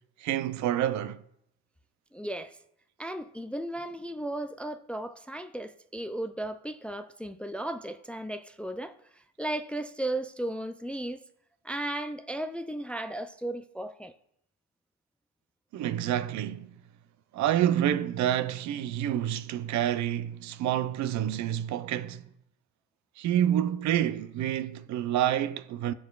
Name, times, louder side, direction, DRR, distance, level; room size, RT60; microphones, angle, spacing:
voice 1, 0.2-1.2 15.7-16.7 17.3-22.2 23.2-25.9, right 11 dB, 55° right, 0.6 m, -28 dB
voice 2, 2.1-2.6 3.0-9.0 9.4-11.2 11.6-14.1, right 1 dB, 5° left, 0.4 m, -35 dB
12.5 x 4.7 x 2.4 m
supercardioid pair, 75°, 34 cm